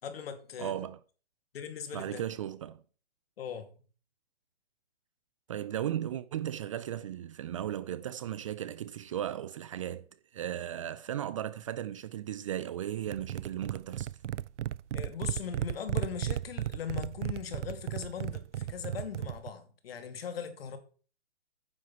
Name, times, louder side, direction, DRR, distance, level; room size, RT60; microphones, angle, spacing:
voice 1, 0.0-0.7 1.5-2.2 3.4-3.7 14.9-20.8, left 7 dB, 60° left, 2.6 m, -39 dB
voice 2, 0.6-1.0 1.9-2.8 5.5-10.1 10.3-14.1, right 11 dB, 30° right, 0.5 m, -36 dB
sound 1, 13.1-19.5, right 12 dB, 85° right, 0.5 m, -35 dB
9.9 x 7.7 x 5.7 m
hypercardioid pair, 145°, 34 cm